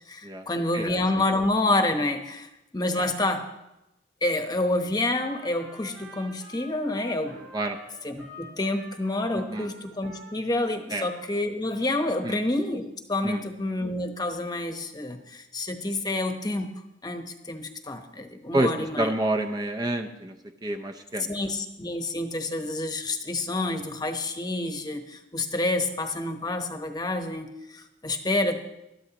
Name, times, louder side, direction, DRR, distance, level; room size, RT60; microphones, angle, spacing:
voice 1, 0.1-3.5 4.2-7.5 8.0-12.8 13.1-16.7 17.0-19.1 21.3-28.6, left 2 dB, 20° left, 6 dB, 1.0 m, -28 dB
Trumpet, 5.1-11.3 11.6-12.4, equal, 75° right, 4.4 m, -48 dB
voice 2, 9.3-9.7 10.9-11.0 12.2-12.4 13.2-13.4 18.5-18.7 19.0-20.3 20.6-21.3, right 1 dB, 20° right, 4 dB, 0.6 m, -28 dB
20.5 x 12.5 x 3.0 m, 0.92 s
head